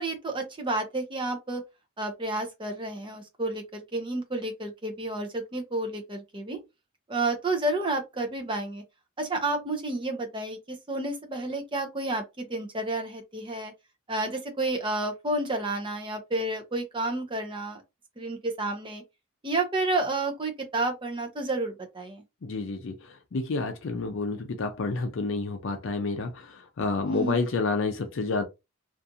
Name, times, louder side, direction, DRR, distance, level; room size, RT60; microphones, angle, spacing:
voice 1, 0.0-1.6 2.0-6.6 7.1-8.8 9.2-13.7 14.1-17.8 18.2-19.0 19.4-22.2 27.0-27.4, right 2 dB, 25° right, 0.6 m, -30 dB
voice 2, 22.4-22.9 23.3-28.4, left 3 dB, 60° left, 0.4 m, -29 dB
2.5 x 2.4 x 2.7 m
head